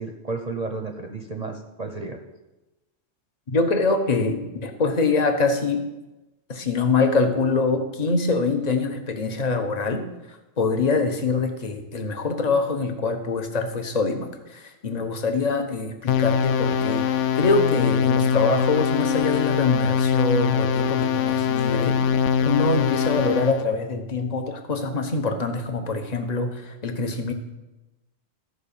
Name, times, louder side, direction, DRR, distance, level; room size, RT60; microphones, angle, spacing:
voice 1, 0.0-2.2, right 3 dB, 40° right, 4 dB, 0.8 m, -32 dB
voice 2, 3.5-5.9 6.5-10.0 10.6-27.3, left 3 dB, 35° left, 6 dB, 1.1 m, -24 dB
sound 1, 16.1-23.6, left 7 dB, 75° left, 0.9 m, -22 dB
13.5 x 4.9 x 7.0 m, 1.0 s
omnidirectional pair, 1.3 m